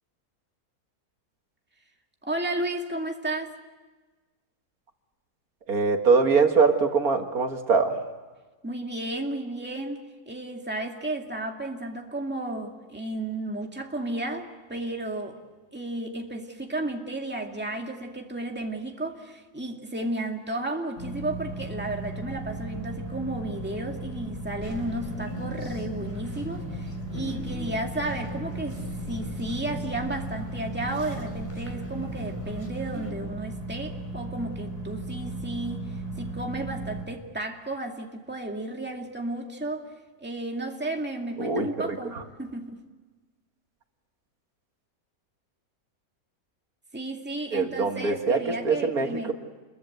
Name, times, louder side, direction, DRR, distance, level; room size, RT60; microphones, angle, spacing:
voice 1, 2.2-3.6 8.6-15.4 15.7-39.9 40.2-42.8 46.9-49.3, right 2 dB, 5° right, 2.2 m, -33 dB
voice 2, 5.7-8.0 41.4-41.9 42.1-42.2 47.5-49.3, right 4 dB, 70° right, 2.2 m, -23 dB
sound 1, 21.0-37.0, right 1 dB, 85° left, 3.8 m, -36 dB
sound 2, 24.6-33.1, left 1 dB, 10° left, 4.2 m, -40 dB
28.5 x 22.5 x 7.9 m
omnidirectional pair, 1.6 m